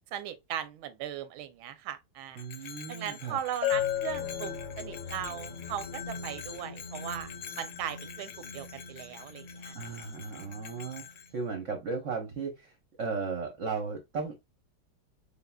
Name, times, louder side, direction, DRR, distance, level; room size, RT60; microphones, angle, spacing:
voice 1, 0.1-9.7, right 10 dB, 85° right, 1.5 m, -38 dB
Bell, 2.3-11.3, left 8 dB, 70° left, 1.0 m, -46 dB
voice 2, 2.4-3.4 9.7-12.7 13.0-14.3, right 4 dB, 55° right, 0.8 m, -36 dB
Bell 2, 3.6-5.2, left 12 dB, 25° right, 0.8 m, -32 dB
sound 1, 3.7-11.4, left 2 dB, 85° left, 0.4 m, -45 dB
4.2 x 3.8 x 2.3 m
omnidirectional pair, 2.2 m